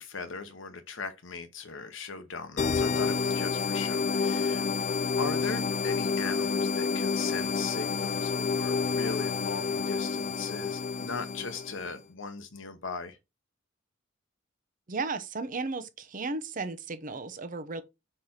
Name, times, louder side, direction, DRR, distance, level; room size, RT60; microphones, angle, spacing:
voice 1, 0.0-4.7 5.2-13.2, left 4 dB, 65° left, 0.8 m, -38 dB
sound 1, 2.6-11.9, left 5 dB, 35° left, 0.4 m, -29 dB
voice 2, 14.9-17.8, right 3 dB, 40° right, 0.8 m, -34 dB
4.9 x 4.4 x 5.6 m
head